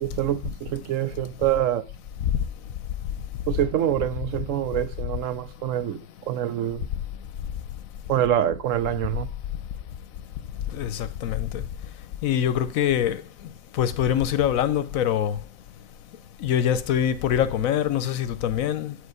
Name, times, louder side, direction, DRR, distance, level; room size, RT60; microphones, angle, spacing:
voice 1, 0.0-1.8 3.5-6.0 6.3-6.9 8.1-9.3, right 11 dB, 75° right, 1.0 m, -25 dB
voice 2, 10.7-11.6 12.2-13.2 13.8-15.4 16.4-19.0, left 10 dB, 85° left, 1.1 m, -24 dB
8.8 x 5.1 x 4.7 m
omnidirectional pair, 1.4 m